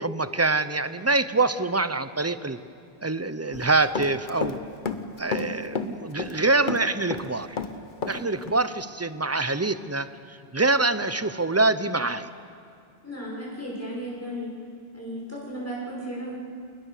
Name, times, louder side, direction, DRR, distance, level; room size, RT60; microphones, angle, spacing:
voice 1, 0.0-2.6 3.0-4.6 5.2-7.5 8.1-10.1 10.5-12.3, right 3 dB, 20° right, 13 dB, 0.5 m, -25 dB
Run, 3.5-4.6 4.8-6.4 6.7-8.2 8.5-8.6, left 5 dB, 55° left, 1.1 m, -30 dB
voice 2, 13.0-14.5 14.9-16.3, equal, 15° left, -5 dB, 6.5 m, -35 dB
28.0 x 20.5 x 6.7 m, 2.4 s
omnidirectional pair, 1.0 m